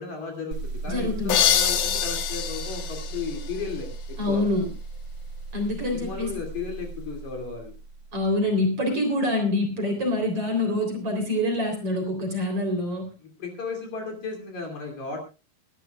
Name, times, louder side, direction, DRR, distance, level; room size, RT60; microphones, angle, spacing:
voice 1, 0.0-4.4 5.9-7.8 13.4-15.2, left 4 dB, 45° left, 3 dB, 3.7 m, -35 dB
sound 1, 0.5-8.3, right 3 dB, 60° right, 1.3 m, -36 dB
voice 2, 0.9-1.4 4.2-4.7 5.5-6.4 8.1-13.1, left 1 dB, 35° right, 4 dB, 4.2 m, -26 dB
sound 2, 1.3-4.0, left 10 dB, 65° left, 2.7 m, -26 dB
23.5 x 12.5 x 2.4 m, 0.30 s
omnidirectional pair, 4.9 m